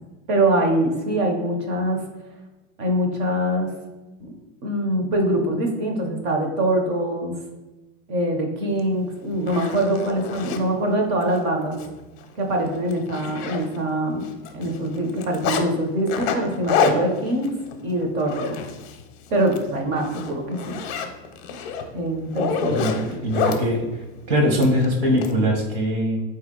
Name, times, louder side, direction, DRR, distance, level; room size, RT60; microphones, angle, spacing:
voice 1, 0.3-2.0 2.8-3.7 4.2-4.3 4.6-7.3 8.1-11.8 12.4-14.3 14.5-17.5 17.8-18.6 19.3-20.8 21.9-22.8, right 1 dB, 30° right, 3 dB, 0.6 m, -23 dB
Zipper (clothing), 8.8-8.9 9.3-10.6 11.2-11.4 11.7-11.9 12.2-12.3 12.7-14.0 14.2-15.6 16.1-19.0 19.4-19.6 20.0-23.6 24.6-25.3, left 6 dB, 55° left, 0.6 m, -27 dB
voice 2, 22.7-26.2, equal, 55° right, 2 dB, 1.1 m, -22 dB
3.9 x 2.7 x 3.7 m, 1.1 s
supercardioid pair, 170°, 38 cm